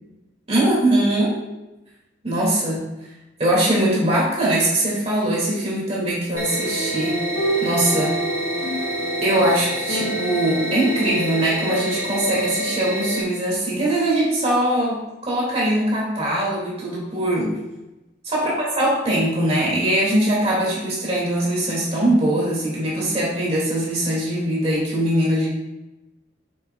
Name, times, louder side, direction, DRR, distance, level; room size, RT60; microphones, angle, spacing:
voice 1, 0.5-1.4 2.2-2.8 3.4-7.2 7.6-8.2 9.2-17.5 18.2-25.5, right 1 dB, 35° right, -5 dB, 2.4 m, -21 dB
sound 1, 6.3-13.2, equal, 70° left, 1.1 m, -27 dB
sound 2, 6.4-13.2, right 1 dB, 15° right, 1.7 m, -31 dB
7.0 x 6.9 x 2.3 m, 1.0 s
head